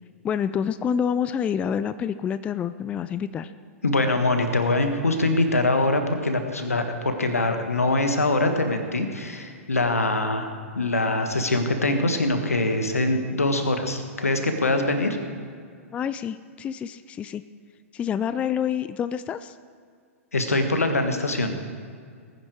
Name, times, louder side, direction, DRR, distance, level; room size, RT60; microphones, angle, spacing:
voice 1, 0.2-3.5 15.9-17.4 17.9-19.6, left 8 dB, 15° left, 14 dB, 0.3 m, -27 dB
voice 2, 3.8-10.5 10.7-15.2 20.3-21.5, left 2 dB, 80° left, 6 dB, 1.5 m, -23 dB
20.0 x 9.7 x 4.7 m, 2.1 s
figure-of-eight pair, 105°, 8 cm